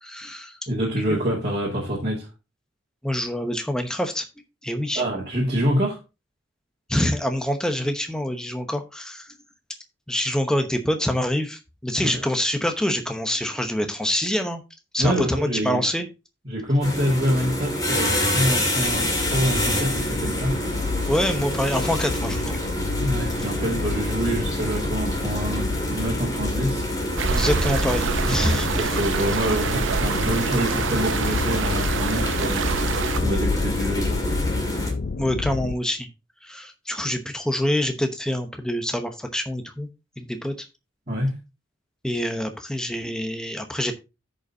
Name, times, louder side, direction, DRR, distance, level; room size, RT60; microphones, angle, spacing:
voice 1, 0.0-0.6 1.1-1.2 3.0-4.3 4.6-5.0 6.9-9.3 10.1-14.6 14.9-16.1 21.1-22.6 27.3-29.0 35.2-36.1 36.4-39.9 40.2-40.7 42.0-43.9, left 1 dB, 5° left, 0.9 m, -26 dB
voice 2, 0.7-2.3 4.9-6.0 12.0-12.2 15.0-15.9 16.4-20.5 23.0-26.9 28.4-32.6 33.2-34.3 41.1-41.3, equal, 35° right, 2.3 m, -26 dB
sound 1, 16.8-34.9, equal, 20° left, 2.0 m, -28 dB
sound 2, 18.8-35.8, left 4 dB, 50° left, 0.5 m, -29 dB
sound 3, 27.2-33.2, right 5 dB, 80° right, 0.6 m, -26 dB
15.0 x 5.3 x 2.7 m
head